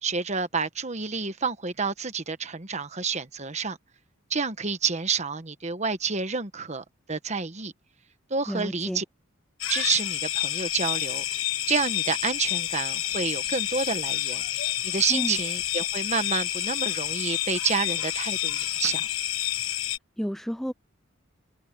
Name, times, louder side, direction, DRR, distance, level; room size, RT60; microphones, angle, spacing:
voice 1, 0.0-3.8 4.3-7.7 8.3-9.0 9.7-11.2 11.7-14.4 14.8-19.1, right 5 dB, 35° right, 1.2 m, -29 dB
voice 2, 8.5-9.0 15.1-15.4 20.2-20.7, equal, ahead, 0.3 m, -31 dB
sound 1, 9.6-20.0, left 13 dB, 90° left, 1.2 m, -29 dB
head